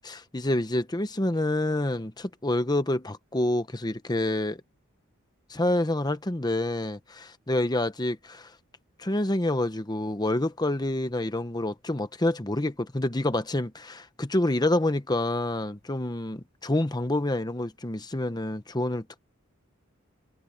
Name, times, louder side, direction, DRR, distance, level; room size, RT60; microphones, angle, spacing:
voice 1, 0.0-4.6 5.5-8.5 9.0-19.2, left 1 dB, 20° left, 1.0 m, -27 dB
head